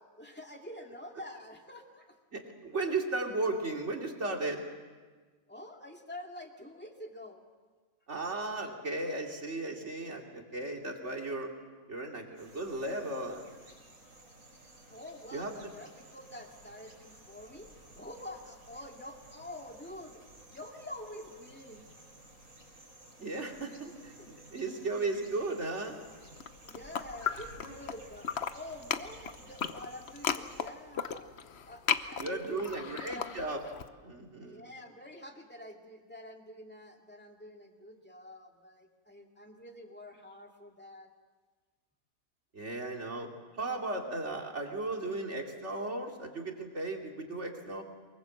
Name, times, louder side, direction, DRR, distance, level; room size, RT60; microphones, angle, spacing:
voice 1, 0.0-2.2 5.5-7.4 14.9-20.2 20.5-21.9 23.7-24.3 26.6-31.3 31.7-33.3 34.4-41.1, left 1 dB, 5° left, 2 dB, 2.3 m, -47 dB
voice 2, 2.3-4.7 8.1-11.5 11.9-13.4 15.3-15.5 23.2-23.7 24.0-26.0 32.2-33.6 34.0-34.6 42.5-43.3 43.6-47.8, right 2 dB, 50° right, 2 dB, 3.1 m, -35 dB
sound 1, 12.4-30.7, right 1 dB, 75° right, 5.7 m, -55 dB
sound 2, 26.3-28.0 28.2-33.8, left 7 dB, 50° left, 1.1 m, -35 dB
23.5 x 22.0 x 7.7 m, 1.4 s
omnidirectional pair, 1.5 m